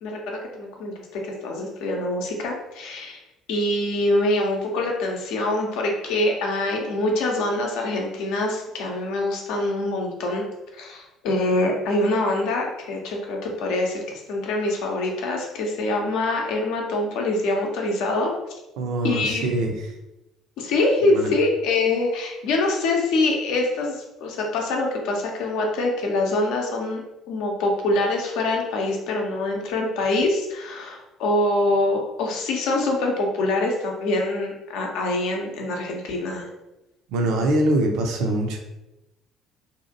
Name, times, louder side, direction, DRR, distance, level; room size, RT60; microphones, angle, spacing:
voice 1, 0.0-3.2 3.5-10.5 10.7-18.3 19.0-19.5 20.6-36.5, left 2 dB, 60° left, 0 dB, 0.6 m, -24 dB
voice 2, 18.8-19.7 21.1-21.3 37.1-38.6, right 1 dB, 60° right, 3 dB, 0.4 m, -23 dB
2.7 x 2.4 x 2.7 m, 0.95 s
figure-of-eight pair, 55°, 0 cm